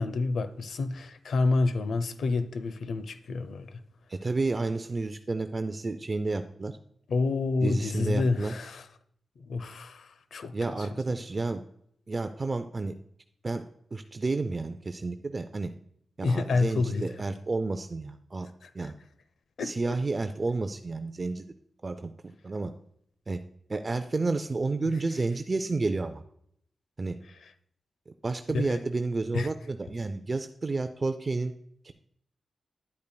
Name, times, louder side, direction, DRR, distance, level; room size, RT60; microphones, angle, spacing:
voice 1, 0.0-3.8 7.1-8.9 9.4-10.9 16.2-17.1 18.6-18.9 19.6-20.0 27.4-27.5 28.5-28.8 29.3-29.5, left 3 dB, 80° left, 0.5 m, -29 dB
voice 2, 4.1-6.8 7.6-8.5 10.5-11.6 12.1-12.9 13.4-13.6 13.9-15.7 16.2-18.5 18.7-18.9 19.6-21.4 21.8-22.1 22.4-22.7 23.3-23.4 23.7-26.2 27.0-27.2 28.2-31.5 31.8-31.9, right 3 dB, 35° right, 0.4 m, -30 dB
10.5 x 8.5 x 2.2 m
wide cardioid pair, 95°, 0 cm